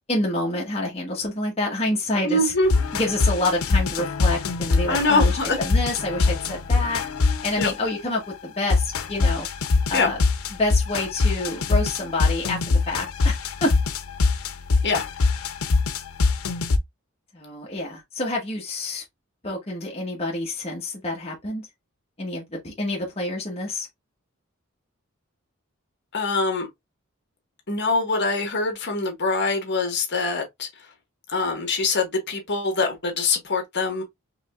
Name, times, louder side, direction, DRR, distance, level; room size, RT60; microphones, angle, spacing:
voice 1, 0.1-2.5 2.9-7.0 7.4-9.5 9.9-10.2 10.5-13.7 17.3-19.0 19.4-21.7 22.2-23.9, left 2 dB, 30° left, 1.2 m, -27 dB
voice 2, 2.2-2.7 4.9-5.6 7.6-7.7 9.9-10.1 14.8-15.0 26.1-26.7 27.7-30.7 31.3-34.0, left 3 dB, 55° left, 1.5 m, -23 dB
sound 1, 2.7-8.0 8.7-16.8, left 4 dB, 90° left, 0.6 m, -22 dB
4.8 x 3.3 x 2.4 m
head